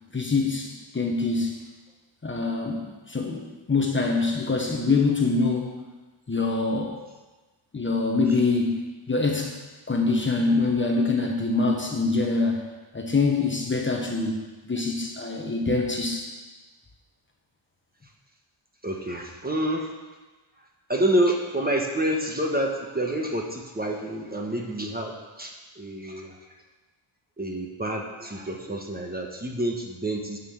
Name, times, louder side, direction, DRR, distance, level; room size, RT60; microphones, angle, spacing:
voice 1, 0.1-1.6 2.2-5.7 6.3-7.0 7.7-9.5 9.9-12.7 12.9-16.3, left 3 dB, 25° left, 1 dB, 1.1 m, -25 dB
voice 2, 18.8-19.9 20.6-25.1 25.4-26.4 27.4-30.4, right 1 dB, 20° right, 1 dB, 1.2 m, -28 dB
9.8 x 5.7 x 7.2 m, 1.2 s
wide cardioid pair, 125°, 49 cm